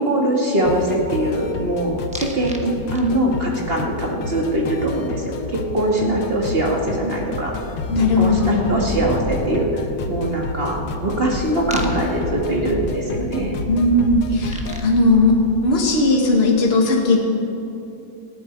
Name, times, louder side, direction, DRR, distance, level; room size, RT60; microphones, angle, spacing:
voice 1, 0.0-7.6 8.2-13.6, right 1 dB, 30° right, -1 dB, 2.2 m, -22 dB
sound 1, 0.7-14.9, left 4 dB, 80° left, 1.6 m, -31 dB
sound 2, 2.1-2.6 2.9-3.4 5.9-6.0 6.2-16.2, equal, 5° right, 0.9 m, -32 dB
voice 2, 7.9-8.8 13.7-15.4 15.6-17.2, left 2 dB, 35° left, 0 dB, 1.9 m, -17 dB
19.0 x 14.5 x 4.7 m, 2.8 s
omnidirectional pair, 1.9 m